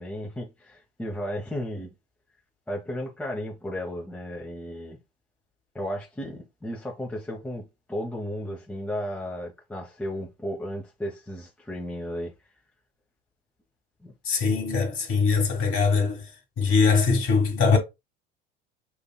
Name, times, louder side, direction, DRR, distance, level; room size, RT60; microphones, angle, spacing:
voice 1, 0.0-1.9 2.7-5.0 5.7-12.3 14.0-14.1, equal, 5° left, 1.1 m, -34 dB
voice 2, 14.2-16.2 16.6-17.8, left 5 dB, 45° left, 2.0 m, -22 dB
5.7 x 2.9 x 2.3 m
figure-of-eight pair, 65°, 30 cm